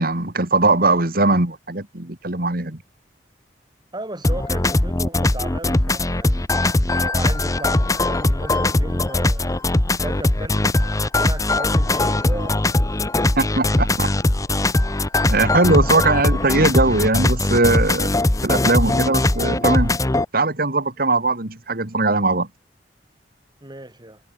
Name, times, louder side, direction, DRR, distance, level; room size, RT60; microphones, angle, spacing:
voice 1, 0.0-2.8 13.4-14.1 15.3-18.1 18.4-20.0 20.3-22.5, right 2 dB, 55° right, 2.9 m, -20 dB
voice 2, 3.9-6.5 7.0-9.5 10.0-12.6 23.6-24.2, right 1 dB, 25° right, 7.0 m, -35 dB
sound 1, 4.2-20.3, left 2 dB, 20° left, 0.9 m, -20 dB
head